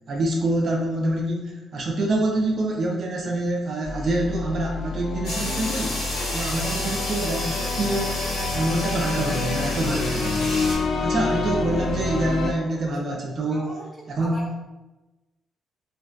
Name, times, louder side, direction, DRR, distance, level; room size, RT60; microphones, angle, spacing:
voice 1, 0.1-10.5 11.0-13.7 14.1-14.4, right 1 dB, 55° right, 0 dB, 0.4 m, -26 dB
sound 1, 3.8-12.5, left 3 dB, 65° left, 0.3 m, -28 dB
sound 2, 5.2-10.8, left 1 dB, 85° left, 0.9 m, -31 dB
voice 2, 13.5-14.5, left 1 dB, 5° left, -4 dB, 0.7 m, -40 dB
2.5 x 2.3 x 2.2 m, 1.1 s
cardioid pair, 90°, 0 cm